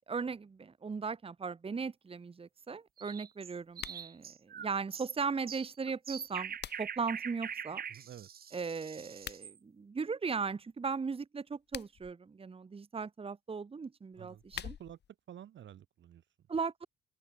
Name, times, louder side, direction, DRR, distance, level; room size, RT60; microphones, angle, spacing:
voice 1, 0.1-6.5 6.8-7.8 8.5-14.7 16.5-16.9, right 5 dB, 30° right, 1.4 m, -37 dB
sound 1, 3.0-9.6, right 8 dB, 50° right, 1.9 m, -44 dB
sound 2, 3.7-4.1 6.1-7.1 9.1-9.5 11.5-12.1 14.1-15.1, left 10 dB, 60° left, 1.4 m, -46 dB
voice 2, 7.9-8.3 14.1-15.0 15.3-16.5, right 10 dB, 70° right, 4.6 m, -51 dB
open air
cardioid pair, 90°, 20 cm